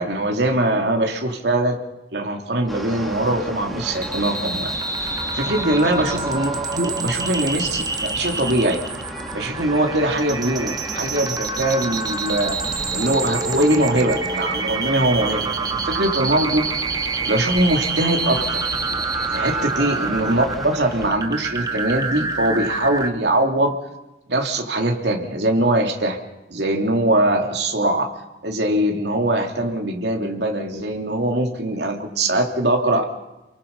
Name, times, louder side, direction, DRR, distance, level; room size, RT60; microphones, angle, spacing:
voice 1, 0.0-1.8 2.1-4.7 5.3-8.8 9.3-12.6 12.9-16.6 17.2-18.7 19.3-23.8 24.3-26.2 26.5-28.1 28.4-33.0, right 1 dB, 60° right, 2 dB, 3.1 m, -22 dB
sound 1, 2.7-21.1, equal, ahead, 2.7 m, -35 dB
sound 2, 3.9-23.1, right 4 dB, 20° right, 1.4 m, -27 dB
29.0 x 23.0 x 5.5 m, 0.99 s
head